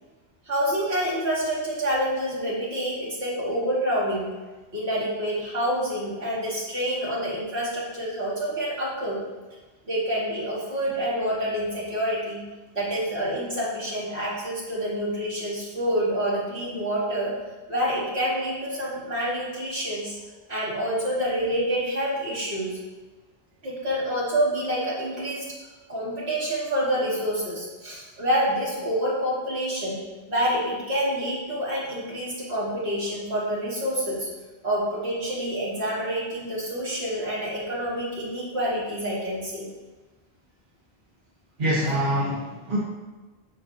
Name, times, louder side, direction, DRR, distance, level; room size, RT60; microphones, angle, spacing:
voice 1, 0.5-4.3 4.7-9.2 9.9-12.4 12.7-17.3 17.7-20.2 20.5-22.8 23.6-25.5 25.9-30.0 30.3-34.3 34.6-39.7, equal, 80° right, -7 dB, 2.8 m, -27 dB
voice 2, 41.6-42.8, right 1 dB, 55° right, -7 dB, 1.6 m, -25 dB
8.8 x 7.0 x 2.9 m, 1.2 s
omnidirectional pair, 1.1 m